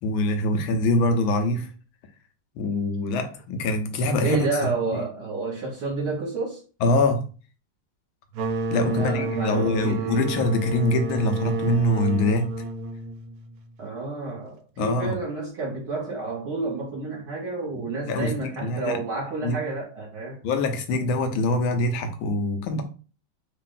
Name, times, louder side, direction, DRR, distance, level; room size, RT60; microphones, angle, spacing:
voice 1, 0.0-1.7 2.6-4.5 4.9-5.0 6.8-7.3 8.7-12.5 14.8-15.1 18.0-19.0 19.4-19.6 20.4-22.8, left 1 dB, 80° left, 1.5 m, -24 dB
voice 2, 4.2-6.6 8.8-10.3 13.8-20.4, right 3 dB, 55° right, 1.5 m, -30 dB
sound 1, 8.3-13.8, right 2 dB, 85° right, 1.4 m, -30 dB
3.7 x 2.5 x 3.7 m
omnidirectional pair, 2.3 m